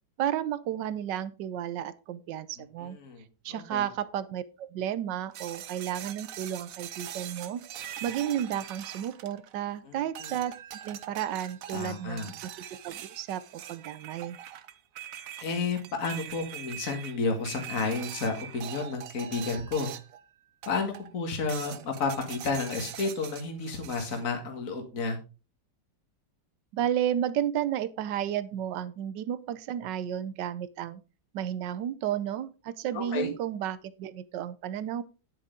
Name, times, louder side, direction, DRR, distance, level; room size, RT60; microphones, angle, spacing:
voice 1, 0.2-3.0 3.4-7.6 8.0-10.5 10.8-12.3 12.8-14.4 26.7-31.0 31.3-35.0, right 10 dB, 90° right, 15 dB, 1.4 m, -32 dB
voice 2, 2.6-3.2 3.5-3.9 9.8-10.4 11.7-12.3 15.4-19.9 20.7-25.2 32.9-33.3, left 4 dB, 50° left, 4 dB, 2.0 m, -32 dB
sound 1, 5.3-9.7 10.2-20.2 20.6-21.1 21.5-24.2, right 10 dB, 60° right, 1.0 m, -42 dB
9.8 x 8.6 x 3.8 m, 0.31 s
omnidirectional pair, 1.9 m